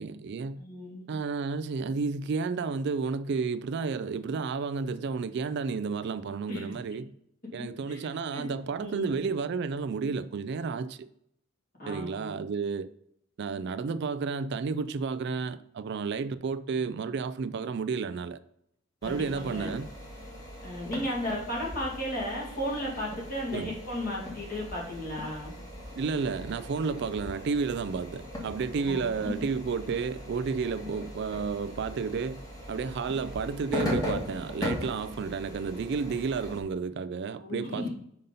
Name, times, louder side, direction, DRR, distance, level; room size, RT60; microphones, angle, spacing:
voice 1, 0.0-0.6 1.1-7.1 7.5-11.1 11.9-12.9 13.4-18.4 19.0-19.9 23.5-23.7 26.0-32.4 32.7-37.9, right 5 dB, 50° right, 0.3 m, -31 dB
voice 2, 0.6-1.1 6.5-6.7 7.6-8.0 8.3-8.4 8.8-9.2 11.8-12.4 19.0-19.8 20.6-25.5 28.8-29.3 30.8-30.9 37.4-37.9, left 1 dB, 40° left, 2.5 m, -35 dB
sound 1, 19.0-36.6, left 1 dB, 15° left, 1.7 m, -39 dB
5.6 x 5.3 x 5.3 m
head